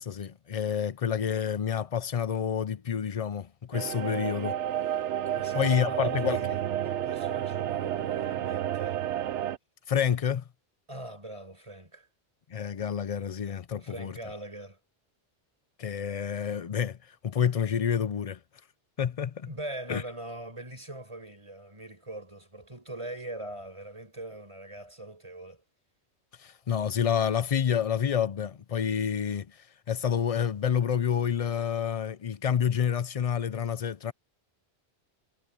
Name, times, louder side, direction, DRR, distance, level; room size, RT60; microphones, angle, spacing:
voice 1, 0.0-4.6 5.5-6.4 9.9-10.4 12.5-14.2 15.8-18.4 19.0-19.5 19.9-20.0 26.4-34.1, left 8 dB, 50° left, 0.4 m, -28 dB
sound 1, 3.7-9.6, right 11 dB, 80° right, 1.0 m, -31 dB
voice 2, 5.3-9.0 10.9-12.1 13.8-14.8 19.5-25.6, right 1 dB, 25° right, 5.4 m, -42 dB
omnidirectional pair, 1.2 m